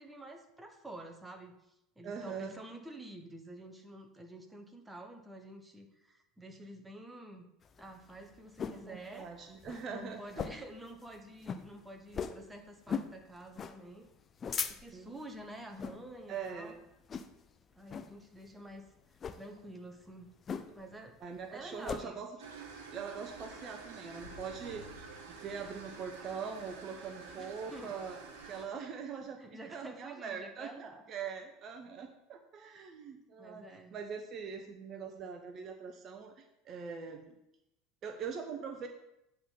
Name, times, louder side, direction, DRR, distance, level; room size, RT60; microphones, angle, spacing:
voice 1, 0.0-1.6 2.0-7.5 7.8-9.5 9.9-14.1 14.8-16.8 17.8-18.9 19.3-20.3 20.7-21.2 21.5-22.2 27.4-27.9 29.4-31.0 33.4-34.0, right 1 dB, 10° right, 4 dB, 1.2 m, -49 dB
voice 2, 2.0-2.5 8.9-10.2 14.9-15.1 16.3-16.8 21.2-22.3 22.9-24.9 25.4-28.2 28.4-33.6 33.9-37.3 38.0-38.9, right 6 dB, 40° right, 5 dB, 0.8 m, -42 dB
sound 1, 7.6-8.9 9.3-9.4 9.6-9.8 10.3-10.8 11.1-11.2 11.4-11.6 12.1-12.4 12.9-13.1 13.6-13.8 14.2-15.1 15.7-16.0 16.4-16.7 17.1-17.5 17.9-18.1 19.1-19.4 20.5-20.9 21.2-22.0, left 6 dB, 30° left, 0.6 m, -38 dB
sound 2, 14.1-19.5 19.9-25.9, left 6 dB, 75° left, 0.8 m, -60 dB
sound 3, 22.4-28.7, right 5 dB, 65° right, 1.4 m, -49 dB
8.5 x 4.0 x 7.1 m, 0.84 s
figure-of-eight pair, 70°, 0 cm